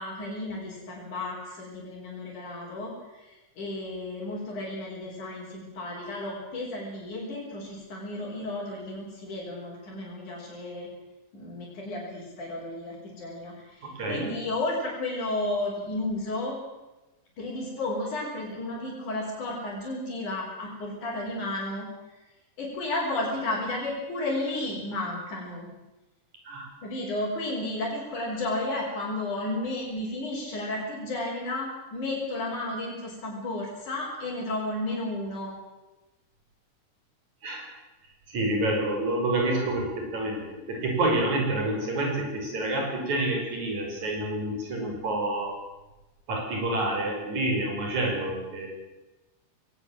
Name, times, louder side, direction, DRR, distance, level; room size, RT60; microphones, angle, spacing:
voice 1, 0.0-10.9 11.3-16.6 17.4-21.9 22.6-25.7 26.8-35.5, left 2 dB, 75° left, -6 dB, 6.2 m, -33 dB
voice 2, 13.8-14.2 26.5-26.7 37.4-37.6 38.3-45.6 46.3-48.7, right 1 dB, 65° right, 0 dB, 7.0 m, -28 dB
21.0 x 18.5 x 7.7 m, 1.1 s
omnidirectional pair, 3.5 m